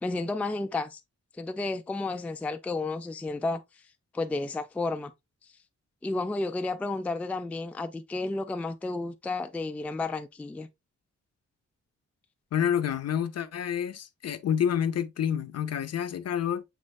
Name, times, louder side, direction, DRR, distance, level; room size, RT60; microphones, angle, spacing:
voice 1, 0.0-1.0 1.4-3.6 4.1-5.1 6.0-10.7, left 3 dB, 5° left, 0.3 m, -32 dB
voice 2, 12.5-16.6, left 9 dB, 60° left, 0.5 m, -28 dB
7.2 x 3.2 x 2.3 m
wide cardioid pair, 175°, 29 cm